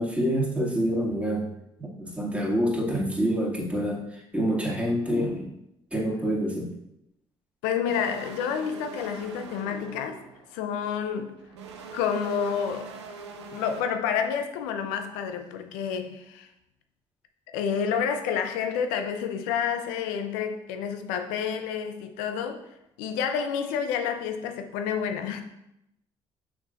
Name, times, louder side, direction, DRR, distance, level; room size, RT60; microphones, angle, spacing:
voice 1, 0.0-1.5 1.8-4.0 4.3-5.5 5.9-6.7, equal, 10° right, 2.2 m, -26 dB
voice 2, 7.6-10.2 10.5-11.3 11.9-12.9 13.5-16.5 17.5-22.6 23.0-25.4, left 7 dB, 75° left, 0.6 m, -29 dB
sound 1, 7.9-13.8, right 5 dB, 90° right, 0.6 m, -43 dB
6.2 x 6.1 x 2.6 m
hypercardioid pair, 50°, 14 cm